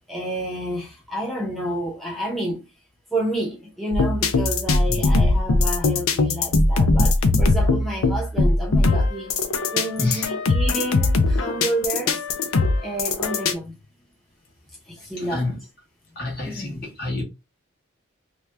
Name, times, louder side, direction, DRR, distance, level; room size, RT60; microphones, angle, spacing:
voice 1, 0.1-2.7 3.1-9.3 9.7-12.2 12.8-13.7 14.8-15.5 16.3-16.7, right 1 dB, ahead, 0.7 m, -29 dB
sound 1, 3.9-13.5, left 2 dB, 80° left, 0.5 m, -20 dB
voice 2, 15.2-15.6 16.1-17.2, left 2 dB, 45° left, 1.2 m, -28 dB
2.9 x 2.3 x 3.2 m
head